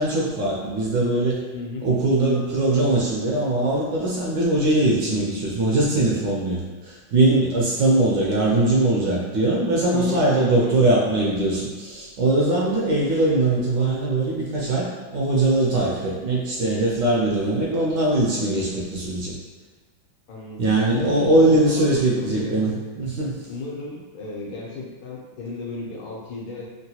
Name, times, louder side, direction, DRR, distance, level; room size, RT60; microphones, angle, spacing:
voice 1, 0.0-1.4 1.8-14.9 15.1-19.3 20.6-22.7 23.0-23.4, right 2 dB, 70° right, -5 dB, 1.2 m, -21 dB
voice 2, 1.5-1.9 9.9-10.9 20.3-22.8 23.5-26.7, left 4 dB, 75° left, -4 dB, 1.5 m, -34 dB
3.8 x 2.2 x 2.8 m, 1.3 s
omnidirectional pair, 2.2 m